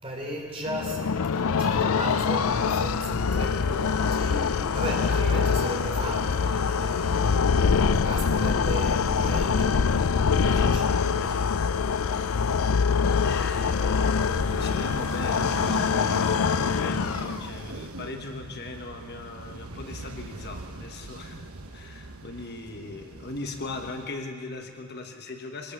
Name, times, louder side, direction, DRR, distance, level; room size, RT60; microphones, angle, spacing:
voice 1, 0.0-10.0 10.3-11.1, equal, 25° right, 0 dB, 4.0 m, -36 dB
sound 1, 0.7-17.6, left 5 dB, 70° left, 0.5 m, -24 dB
voice 2, 10.4-12.0 13.2-25.7, left 3 dB, 45° left, 4 dB, 1.3 m, -39 dB
sound 2, 13.5-24.1, right 2 dB, 70° right, 1.1 m, -40 dB
23.5 x 19.0 x 7.3 m, 2.2 s
head